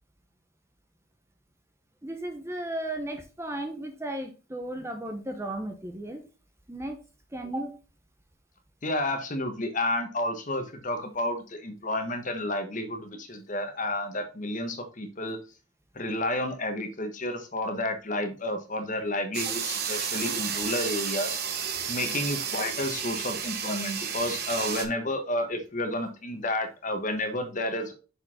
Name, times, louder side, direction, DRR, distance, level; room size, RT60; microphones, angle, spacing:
voice 1, 2.0-6.2 6.7-7.0 7.3-7.7 22.0-22.2, right 1 dB, 15° right, 5 dB, 0.8 m, -35 dB
voice 2, 8.8-15.4 15.9-21.4 21.9-27.9, left 1 dB, 40° left, 6 dB, 1.3 m, -31 dB
sound 1, 19.3-24.9, right 7 dB, 50° right, 1.1 m, -32 dB
6.4 x 5.1 x 3.6 m, 0.33 s
head